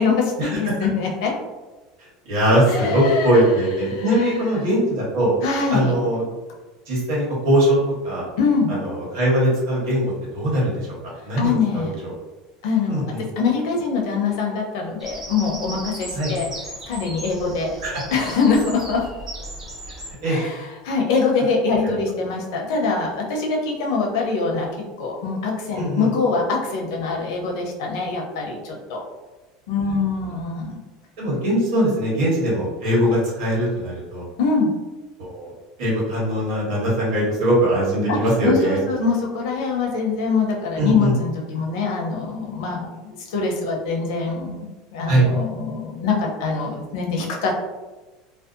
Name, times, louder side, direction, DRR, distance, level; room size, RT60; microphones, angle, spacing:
voice 1, 0.0-1.3 2.7-3.4 3.8-4.4 5.4-5.9 8.4-8.7 11.4-11.9 12.6-16.5 16.9-17.8 18.1-19.1 20.2-29.0 29.7-30.8 34.4-34.7 38.1-38.2 38.4-47.5, left 4 dB, 80° left, 0 dB, 0.6 m, -23 dB
voice 2, 2.3-5.3 5.7-6.2 6.9-7.8 8.0-8.2 8.7-10.0 10.3-10.7 11.2-12.1 12.9-13.2 16.1-16.3 17.8-18.0 20.2-20.4 25.7-26.1 31.2-34.3 35.2-35.5 35.8-38.8 40.8-41.1 45.1-45.3, right 1 dB, 90° right, -5 dB, 1.2 m, -21 dB
Bird vocalization bird call bird song, 15.0-20.1, right 1 dB, 15° right, 0.6 m, -36 dB
2.6 x 2.1 x 2.5 m, 1.2 s
supercardioid pair, 140°, 2 cm